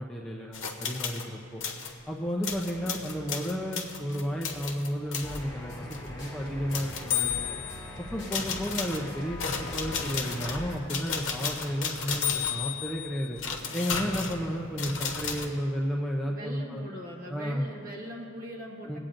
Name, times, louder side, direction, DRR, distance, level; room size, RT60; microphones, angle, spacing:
voice 1, 0.0-1.6 2.1-7.4 8.1-13.4 13.7-16.8 17.3-17.7 18.8-19.0, equal, 5° left, -3 dB, 0.5 m, -32 dB
sound 1, 0.5-1.3 1.6-1.9 2.4-5.4 5.9-6.1 6.7-7.9 8.3-15.5, left 6 dB, 60° left, 1.0 m, -33 dB
sound 2, 2.5-5.4, right 1 dB, 75° right, 1.9 m, -55 dB
sound 3, 5.2-10.8, left 1 dB, 20° left, 2.0 m, -41 dB
voice 2, 16.2-19.0, equal, 40° right, -2 dB, 1.3 m, -42 dB
22.5 x 8.7 x 2.5 m, 2.6 s
head